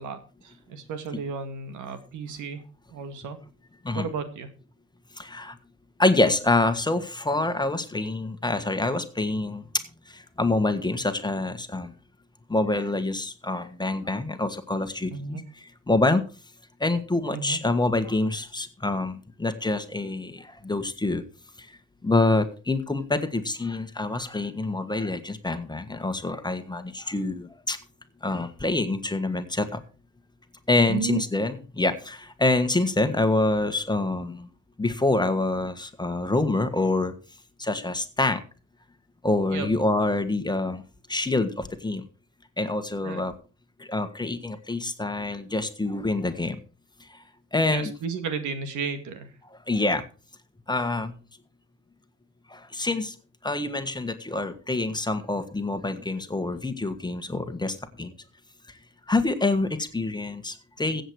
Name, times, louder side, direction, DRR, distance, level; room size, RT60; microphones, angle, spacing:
voice 1, 0.0-2.6 2.9-3.4 3.9-4.5 15.1-15.4 17.3-17.6 30.9-31.2 39.5-39.7 43.0-43.2 47.7-49.3, right 6 dB, 85° right, 9 dB, 2.1 m, -33 dB
voice 2, 5.2-5.5 6.0-9.6 10.1-11.9 12.5-15.4 15.9-16.2 16.8-21.2 21.6-27.8 28.2-29.8 30.7-34.5 34.8-37.1 37.6-38.4 39.2-40.8 41.1-42.0 42.6-43.3 43.8-46.6 47.1-47.2 47.5-47.9 49.7-50.0 50.7-51.1 52.5-53.1 53.4-58.1 58.7-58.8 59.1-61.0, left 2 dB, 15° left, 9 dB, 1.5 m, -26 dB
15.5 x 7.9 x 4.7 m, 0.35 s
cardioid pair, 90°, 30 cm